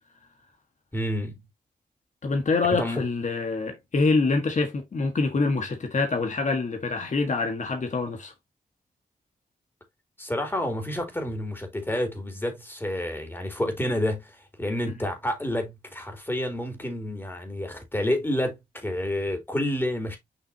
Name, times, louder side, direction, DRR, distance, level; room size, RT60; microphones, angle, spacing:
voice 1, 0.9-1.4 2.7-3.0 10.2-20.2, left 1 dB, 15° left, 3.2 m, -29 dB
voice 2, 2.2-8.3, left 3 dB, 50° left, 1.6 m, -25 dB
6.7 x 5.8 x 2.8 m
wide cardioid pair, 100°, 16 cm